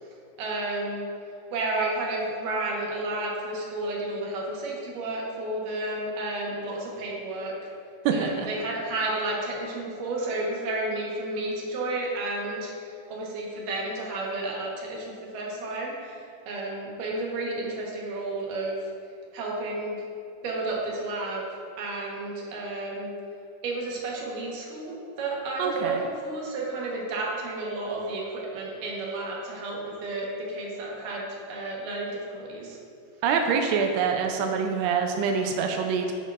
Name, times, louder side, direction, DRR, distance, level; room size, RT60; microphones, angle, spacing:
voice 1, 0.4-1.1 1.5-7.6 8.1-18.8 19.3-20.0 20.4-21.4 21.8-23.2 23.6-32.8, right 2 dB, 65° right, -3 dB, 2.4 m, -32 dB
voice 2, 8.1-8.5 25.6-26.0 33.2-36.1, right 6 dB, 85° right, 4 dB, 2.7 m, -25 dB
8.7 x 8.5 x 2.5 m, 2.4 s
omnidirectional pair, 4.9 m